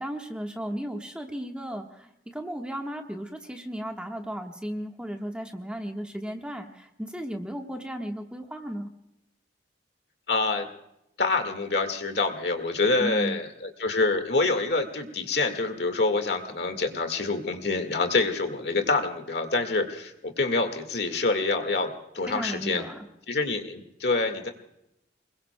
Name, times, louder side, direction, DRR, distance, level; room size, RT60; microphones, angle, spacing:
voice 1, 0.0-8.9 13.0-13.4 22.3-23.0, equal, 5° right, 2 dB, 1.4 m, -35 dB
voice 2, 10.3-10.7 11.2-22.8 23.3-24.5, left 3 dB, 65° left, 6 dB, 1.8 m, -26 dB
29.0 x 21.0 x 2.2 m, 0.83 s
head